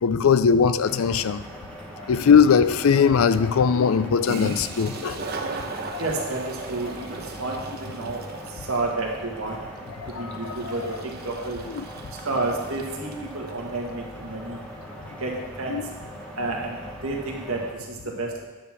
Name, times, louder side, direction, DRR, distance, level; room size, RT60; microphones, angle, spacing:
voice 1, 0.0-1.4 2.1-5.2 5.9-6.0 10.0-10.7 11.8-11.9 15.7-15.8, left 6 dB, 70° left, 0.4 m, -20 dB
sound 1, 0.8-17.7, equal, 5° left, 1.3 m, -41 dB
Toilet flush, 4.2-13.6, right 3 dB, 45° right, 0.9 m, -38 dB
voice 2, 6.0-8.2 8.5-9.6 10.1-10.9 11.2-11.6 12.2-14.6 15.2-15.8 16.4-18.4, right 2 dB, 75° right, 1.8 m, -30 dB
10.0 x 4.6 x 7.5 m
head